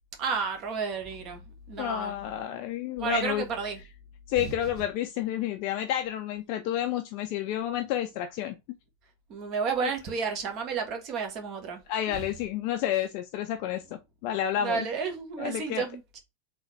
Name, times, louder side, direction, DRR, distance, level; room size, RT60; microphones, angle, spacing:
voice 1, 0.2-1.4 1.7-2.1 3.0-3.8 4.4-4.5 9.3-11.8 12.1-12.2 14.6-16.2, right 6 dB, 40° right, 1.3 m, -31 dB
voice 2, 1.8-3.4 4.3-8.6 9.8-9.9 11.9-14.9 15.4-15.8, left 11 dB, 45° left, 0.4 m, -30 dB
3.9 x 3.1 x 3.1 m
figure-of-eight pair, 90°, 0 cm